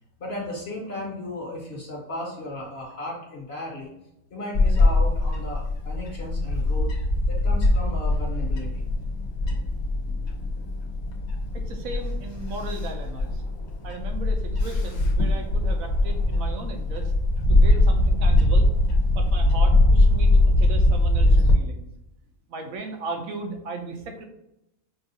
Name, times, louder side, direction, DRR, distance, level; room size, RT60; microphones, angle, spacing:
voice 1, 0.2-3.9 4.3-6.9 7.3-8.9, left 1 dB, 50° left, -2 dB, 1.2 m, -35 dB
Bird / Wind, 4.5-21.5, left 2 dB, 85° left, 1.2 m, -21 dB
voice 2, 11.5-13.4 13.8-17.1 17.5-21.9 22.5-24.3, right 3 dB, 75° right, 4 dB, 1.1 m, -36 dB
5.3 x 2.4 x 2.7 m, 0.85 s
omnidirectional pair, 1.5 m